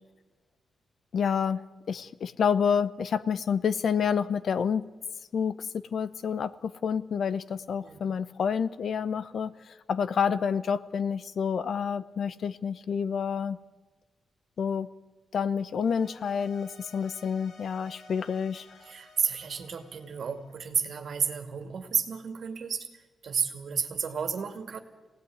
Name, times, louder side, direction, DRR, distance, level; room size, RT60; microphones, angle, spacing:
voice 1, 1.1-1.6 1.9-4.9 5.3-13.6 14.6-14.9 15.3-18.7, left 7 dB, 60° left, 15 dB, 0.8 m, -28 dB
sound 1, 15.8-21.1, left 1 dB, 90° left, 7.9 m, -54 dB
voice 2, 18.8-24.8, right 6 dB, 55° right, 7 dB, 2.4 m, -32 dB
26.0 x 18.0 x 9.5 m, 1.3 s
wide cardioid pair, 160°, 0 cm